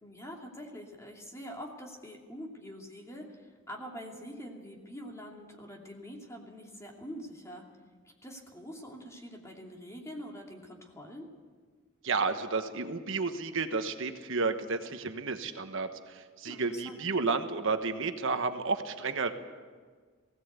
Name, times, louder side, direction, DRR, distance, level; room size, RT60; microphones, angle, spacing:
voice 1, 0.0-7.6 8.2-11.3 16.4-17.1, equal, 15° left, 0 dB, 2.7 m, -45 dB
voice 2, 12.0-19.3, right 4 dB, 65° right, 7 dB, 1.3 m, -31 dB
19.5 x 17.0 x 8.2 m, 1.5 s
head